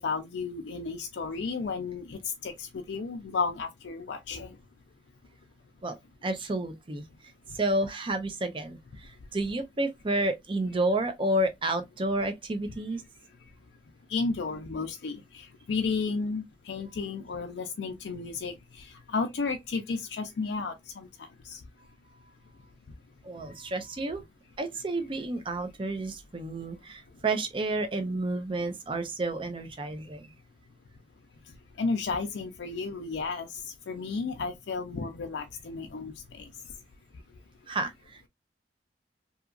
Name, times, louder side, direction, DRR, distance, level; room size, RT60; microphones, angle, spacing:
voice 1, 0.0-4.6 14.1-21.6 31.8-36.5, left 4 dB, 85° left, 0.4 m, -33 dB
voice 2, 5.8-7.0 7.5-13.0 23.2-24.2 24.6-30.3 37.7-38.3, right 2 dB, 30° right, 0.5 m, -30 dB
2.8 x 2.4 x 2.3 m
head